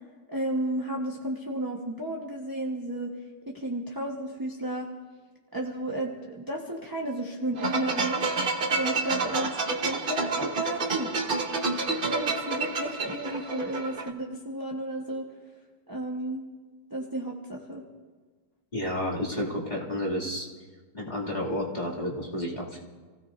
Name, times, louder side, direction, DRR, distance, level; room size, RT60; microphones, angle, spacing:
voice 1, 0.3-3.1 3.5-4.9 5.5-8.3 8.8-11.3 11.7-15.3 15.9-16.4 16.9-17.9, right 1 dB, 15° right, -2 dB, 1.2 m, -33 dB
sound 1, 7.6-14.1, right 3 dB, 40° right, 0.9 m, -29 dB
voice 2, 18.7-20.5 20.9-22.8, left 1 dB, 25° left, -6 dB, 2.8 m, -31 dB
29.0 x 16.5 x 2.7 m, 1.4 s
omnidirectional pair, 1.9 m